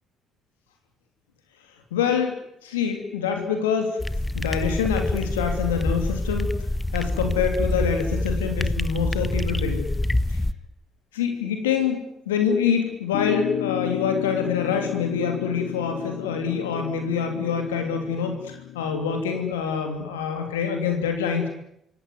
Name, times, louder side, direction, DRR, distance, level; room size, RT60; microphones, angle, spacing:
voice 1, 1.9-4.0 4.3-6.5 6.9-9.9 10.3-10.4 11.1-21.5, left 6 dB, 85° left, 5 dB, 3.0 m, -25 dB
sound 1, 4.0-10.5, left 1 dB, 15° left, 1.2 m, -26 dB
sound 2, 13.1-19.5, left 12 dB, 65° left, 2.2 m, -33 dB
26.5 x 17.5 x 9.6 m, 0.77 s
hypercardioid pair, 50°, 0 cm